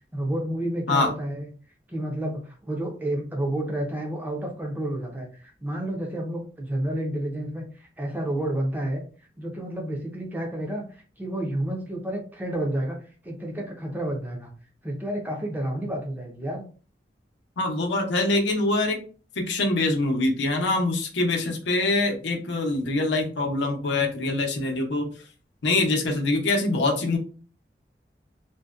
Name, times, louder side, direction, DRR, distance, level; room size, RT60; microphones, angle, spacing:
voice 1, 0.1-1.5 1.9-9.0 9.4-14.5 14.8-16.6, right 1 dB, 10° right, 0 dB, 0.5 m, -30 dB
voice 2, 17.6-19.0 19.4-25.1 25.6-27.2, left 2 dB, 85° left, 2 dB, 0.6 m, -24 dB
2.6 x 2.1 x 2.3 m, 0.39 s
head